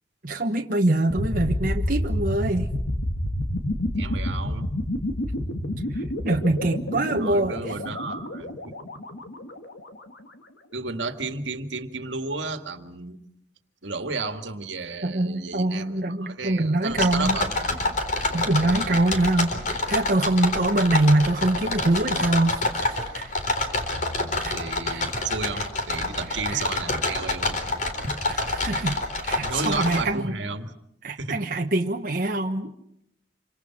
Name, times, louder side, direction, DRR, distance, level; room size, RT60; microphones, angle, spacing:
voice 1, 0.2-2.7 5.9-7.7 15.0-17.4 18.3-19.5 19.9-23.3 24.4-24.6 24.9-25.0 26.5-26.6 28.3-30.4 31.0-32.7, right 2 dB, 50° right, 3 dB, 1.1 m, -24 dB
sound 1, 1.1-10.0, left 1 dB, 75° left, 2.2 m, -29 dB
voice 2, 4.0-4.7 7.2-8.8 10.7-13.2 13.8-17.7 24.5-27.6 28.0-28.2 29.4-30.7 31.2-31.4, right 3 dB, 85° right, 7 dB, 2.0 m, -33 dB
sound 2, 16.9-30.0, left 2 dB, 45° left, 3.9 m, -27 dB
28.0 x 25.0 x 6.0 m, 0.79 s
head